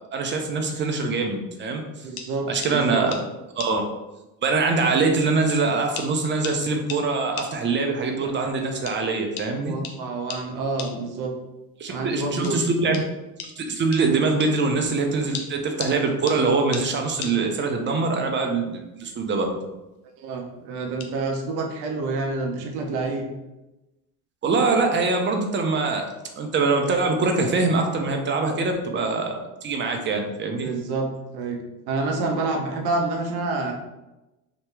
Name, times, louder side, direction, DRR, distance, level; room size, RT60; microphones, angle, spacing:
voice 1, 0.1-1.8 2.5-3.2 3.6-3.8 4.4-9.7 11.8-13.0 13.4-19.6 24.4-26.0 26.4-30.7, right 3 dB, 25° right, 3 dB, 0.6 m, -23 dB
voice 2, 2.0-3.1 9.6-11.3 11.9-12.6 20.2-23.3 30.6-31.6 31.9-33.7, right 3 dB, 65° right, 2 dB, 0.7 m, -28 dB
sound 1, 2.2-2.3 2.6-2.8 3.1-3.2 3.6-3.7 4.7-4.8 5.5-5.6 6.0-6.1 6.4-6.6 6.9-7.0 7.4-7.5 8.9-9.0 9.4-9.5 9.8-10.0 10.3-10.4 10.8-10.9 12.4-12.6 12.9-13.1 13.4-13.5 13.9-14.1 14.4-14.5 15.3-16.0 16.3-16.4 16.7-16.9 17.2-17.4 19.0-19.3 19.5-19.9 21.0-21.1, left 7 dB, 90° left, 0.5 m, -35 dB
2.9 x 2.1 x 3.2 m, 1.0 s
supercardioid pair, 75°, 42 cm